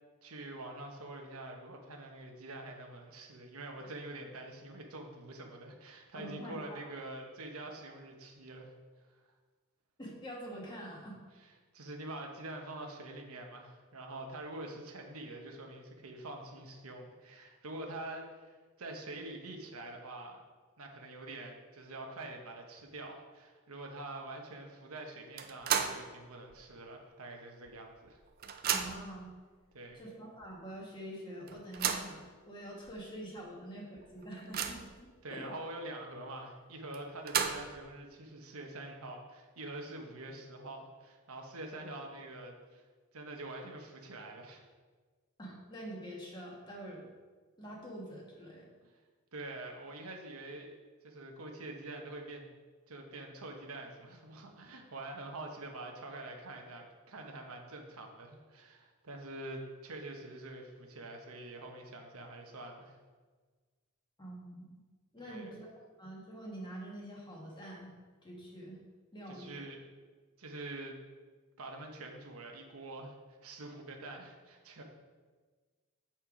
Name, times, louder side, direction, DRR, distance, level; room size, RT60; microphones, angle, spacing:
voice 1, 0.2-8.7 11.4-20.4 20.8-28.2 29.7-30.0 35.2-42.8 43.1-44.6 48.8-48.9 49.3-50.7 51.0-52.5 52.9-63.0 65.2-65.6 69.3-69.9 70.4-71.0 71.6-74.8, right 2 dB, 85° right, 2 dB, 1.0 m, -45 dB
voice 2, 6.1-6.9 10.0-11.2 28.7-29.3 29.9-32.2 32.5-35.5 45.4-47.0 47.6-48.7 64.2-64.8 65.1-65.7 66.0-67.9 68.2-68.8 69.1-69.7, right 1 dB, 20° left, -3 dB, 1.4 m, -46 dB
sound 1, 25.4-26.1 26.5-26.6 27.7-27.8 28.0-29.2 29.9-30.0 30.4-30.5 31.5-32.2 32.9-33.0 33.4-33.5 34.0-35.0 36.9-37.8, right 7 dB, 45° right, 0.5 m, -34 dB
7.5 x 4.4 x 4.9 m, 1.4 s
head